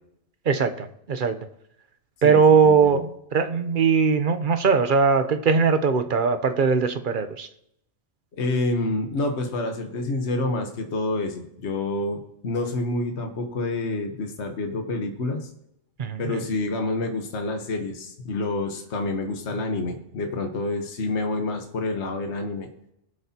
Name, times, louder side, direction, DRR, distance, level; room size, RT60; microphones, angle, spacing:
voice 1, 0.5-1.4 2.2-7.5 16.0-16.4, right 5 dB, 45° right, 9 dB, 0.8 m, -20 dB
voice 2, 2.2-3.0 8.3-15.5 16.2-22.7, left 2 dB, 60° left, 4 dB, 1.4 m, -28 dB
22.0 x 7.8 x 2.8 m, 0.79 s
omnidirectional pair, 1.3 m